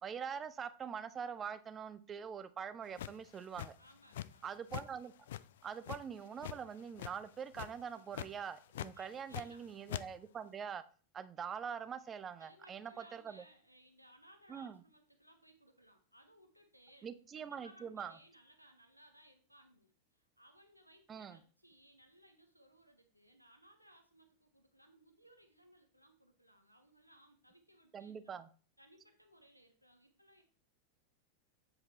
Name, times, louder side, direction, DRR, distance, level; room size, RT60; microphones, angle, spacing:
voice 1, 0.0-3.8 4.4-5.1 5.6-10.8 11.1-13.4 14.5-14.8 17.0-18.1 21.1-21.4 27.9-28.5, right 7 dB, 25° right, 0.6 m, -44 dB
sound 1, 3.0-4.4 4.7-4.9 5.3-6.6 7.0-7.3 7.5-7.8 8.1-8.3 8.7-9.6 9.9-10.0, left 12 dB, 60° left, 0.3 m, -43 dB
voice 2, 3.8-4.8 8.9-9.6 12.4-17.1 17.4-28.3 28.8-30.4, right 1 dB, 90° right, 1.2 m, -64 dB
8.2 x 4.9 x 4.1 m
figure-of-eight pair, 90°, 0 cm